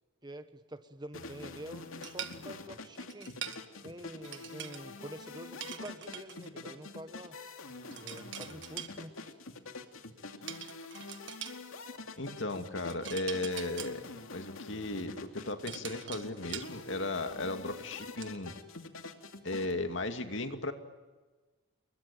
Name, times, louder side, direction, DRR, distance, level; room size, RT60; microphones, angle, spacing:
voice 1, 0.2-3.3 3.8-7.4 8.0-9.1, right 1 dB, 20° right, 10 dB, 1.3 m, -47 dB
sound 1, 1.1-19.7, left 3 dB, 90° left, 2.6 m, -46 dB
sound 2, 2.0-2.4 3.1-3.6 4.2-4.8 5.6-6.5 7.9-8.9 10.5-11.6 12.8-13.9 15.2-16.7 17.2-17.4 17.8-18.4, right 10 dB, 60° right, 1.7 m, -43 dB
voice 2, 12.2-14.0 14.3-15.2 15.4-18.5 19.4-20.7, left 2 dB, 65° left, 7 dB, 2.4 m, -36 dB
29.0 x 22.0 x 9.0 m, 1.3 s
head